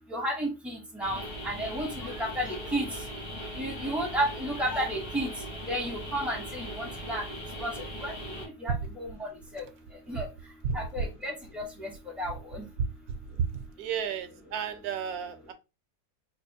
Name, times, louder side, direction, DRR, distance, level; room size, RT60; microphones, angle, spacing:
voice 1, 0.1-2.9 3.6-5.3 5.7-7.2 7.6-7.7 8.0-9.3 9.5-9.6 10.1-10.3 10.7-11.9 12.2-12.6, right 1 dB, ahead, 0 dB, 0.5 m, -32 dB
sound 1, 1.0-8.5, equal, 65° left, 1.8 m, -39 dB
voice 2, 13.8-15.5, right 7 dB, 75° right, 9 dB, 1.0 m, -32 dB
4.1 x 2.5 x 2.7 m, 0.27 s
omnidirectional pair, 1.7 m